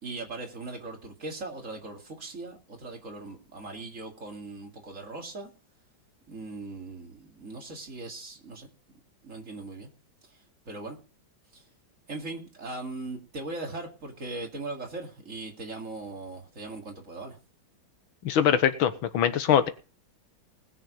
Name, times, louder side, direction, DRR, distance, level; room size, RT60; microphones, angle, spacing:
voice 1, 0.0-5.5 6.3-8.7 9.2-9.9 10.2-10.4 10.7-11.0 11.5-11.6 12.1-17.4 19.5-19.6, right 2 dB, 40° right, 2 dB, 2.6 m, -39 dB
voice 2, 18.2-19.7, left 9 dB, 85° left, 11 dB, 1.9 m, -23 dB
19.5 x 6.8 x 5.1 m, 0.34 s
omnidirectional pair, 2.2 m